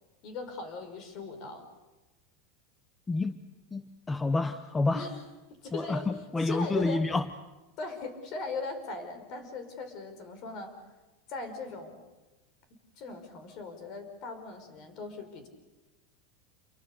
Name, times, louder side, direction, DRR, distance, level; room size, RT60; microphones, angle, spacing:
voice 1, 0.2-1.7 4.9-5.2 5.5-7.1 7.8-10.8 11.3-12.0 13.0-15.5, left 4 dB, 45° left, 8 dB, 5.3 m, -39 dB
voice 2, 3.7-5.1 5.7-7.3, left 2 dB, 10° left, 11 dB, 0.9 m, -29 dB
28.5 x 23.5 x 6.8 m, 1.1 s
supercardioid pair, 145°, 0 cm